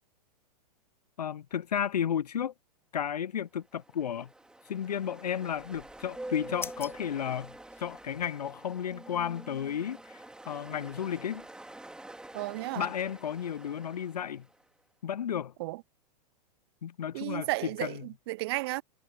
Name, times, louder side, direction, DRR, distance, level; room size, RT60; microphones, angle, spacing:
voice 1, 1.2-2.5 2.9-4.3 4.7-7.5 7.8-11.5 12.7-14.5 15.0-15.5 16.8-18.0, left 9 dB, 70° left, 0.7 m, -33 dB
Ocean, 3.6-14.7, right 1 dB, 5° right, 3.1 m, -47 dB
sound 1, 5.5-8.3, left 5 dB, 10° left, 3.1 m, -47 dB
voice 2, 12.3-12.9 15.6-15.8 17.1-18.8, right 21 dB, 35° right, 0.4 m, -33 dB
figure-of-eight pair, 105°, 21 cm